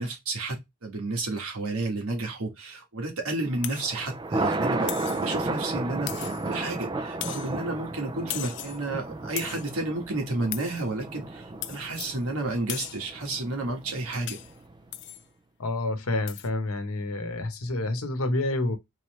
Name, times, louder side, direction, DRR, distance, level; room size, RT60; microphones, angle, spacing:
voice 1, 0.0-14.4, right 2 dB, 80° right, 1.5 m, -31 dB
Thunder, 3.5-14.8, right 2 dB, 20° right, 0.3 m, -33 dB
sound 1, 3.6-4.0 4.9-5.3 6.1-6.6 7.2-7.6 8.3-8.8 9.4-9.8 10.5-10.9 11.6-12.2 12.7-13.1 14.3-14.6 14.9-15.2 16.3-16.5, left 14 dB, 55° left, 0.4 m, -37 dB
voice 2, 15.6-18.8, left 2 dB, 85° left, 0.9 m, -28 dB
4.0 x 3.2 x 3.1 m
head